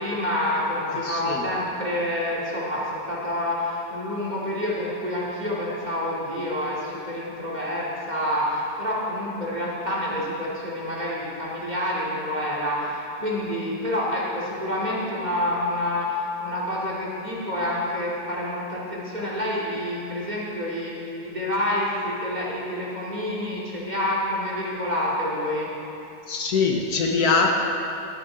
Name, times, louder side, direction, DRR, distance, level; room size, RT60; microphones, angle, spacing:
voice 1, 0.0-25.7, left 1 dB, 25° right, -6 dB, 2.3 m, -28 dB
voice 2, 1.0-1.4 26.3-27.6, left 4 dB, 65° left, 1 dB, 1.3 m, -22 dB
12.0 x 9.7 x 4.9 m, 2.8 s
omnidirectional pair, 1.8 m